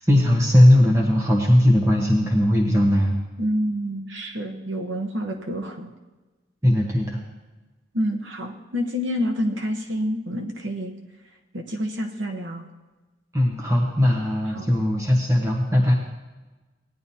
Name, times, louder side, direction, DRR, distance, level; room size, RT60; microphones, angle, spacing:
voice 1, 0.1-3.2 6.6-7.2 13.3-15.9, left 1 dB, 15° right, -1 dB, 1.1 m, -18 dB
voice 2, 3.4-5.9 7.9-10.9 11.5-12.7 14.5-14.7, equal, 75° right, 3 dB, 0.9 m, -28 dB
17.5 x 10.5 x 2.8 m, 1.2 s
head